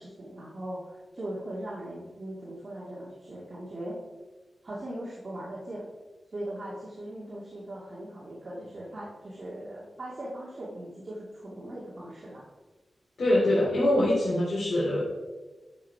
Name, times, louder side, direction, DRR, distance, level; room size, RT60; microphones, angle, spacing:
voice 1, 0.0-4.0 4.6-5.9 6.3-12.4, right 1 dB, 40° right, -7 dB, 2.5 m, -39 dB
voice 2, 13.2-15.1, left 1 dB, 75° left, -7 dB, 3.4 m, -24 dB
11.5 x 7.5 x 4.9 m, 1.3 s
wide cardioid pair, 160°, 0 cm